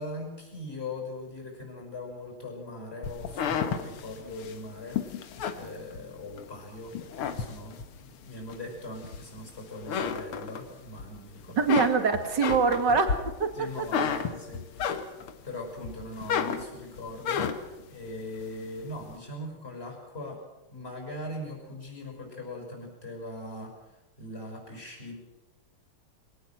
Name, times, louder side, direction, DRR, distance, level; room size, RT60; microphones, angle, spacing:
voice 1, 0.0-11.7 13.5-14.9 15.4-20.4 20.7-25.1, left 1 dB, 25° left, 1 dB, 6.3 m, -40 dB
sound 1, 3.0-6.5 6.9-8.0 8.5-9.5 9.8-11.0 11.4-15.4 15.8-17.8, left 7 dB, 85° left, 2.3 m, -32 dB
voice 2, 11.6-13.5 14.0-14.1, right 5 dB, 55° right, 7 dB, 2.8 m, -24 dB
23.0 x 18.0 x 7.6 m, 1.0 s
omnidirectional pair, 2.3 m